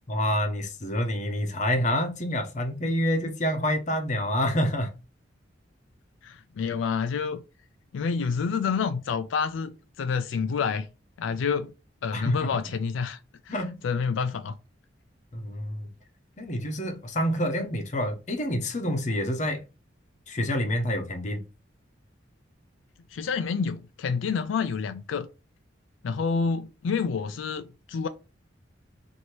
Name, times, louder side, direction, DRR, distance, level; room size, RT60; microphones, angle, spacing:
voice 1, 0.1-4.9 12.1-12.5 13.5-13.8 15.3-15.9 16.4-19.6 20.3-21.4, equal, 40° left, 0.7 m, -27 dB
voice 2, 6.2-7.4 7.9-10.9 11.2-11.7 12.0-13.2 13.5-13.6 13.8-14.5 23.1-25.3 26.0-28.1, left 5 dB, 80° left, 0.4 m, -28 dB
4.4 x 2.7 x 3.1 m
head